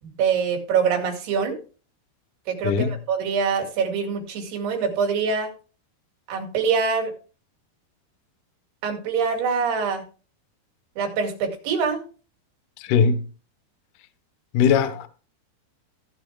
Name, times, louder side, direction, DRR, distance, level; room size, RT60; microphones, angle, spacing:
voice 1, 0.0-1.6 2.5-5.5 6.3-7.1 8.8-10.0 11.0-12.0, right 6 dB, 75° right, 4.1 m, -24 dB
voice 2, 2.6-2.9 12.8-13.2 14.5-15.1, left 6 dB, 70° left, 2.1 m, -20 dB
16.5 x 10.0 x 2.3 m
omnidirectional pair, 4.8 m